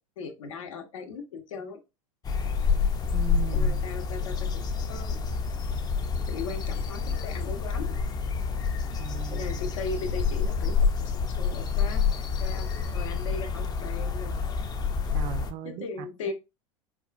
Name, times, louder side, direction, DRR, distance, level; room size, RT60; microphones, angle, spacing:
voice 1, 0.2-1.8 3.5-4.6 4.9-5.2 6.3-8.0 9.3-12.0 12.4-14.4 15.1-15.2 15.6-16.3, left 4 dB, 75° left, 0.7 m, -38 dB
sound 1, 2.2-15.5, left 5 dB, 25° left, 0.4 m, -28 dB
voice 2, 3.1-3.8 9.0-9.7 15.1-16.1, right 9 dB, 40° right, 0.4 m, -38 dB
4.2 x 2.3 x 2.3 m
hypercardioid pair, 90°, 17 cm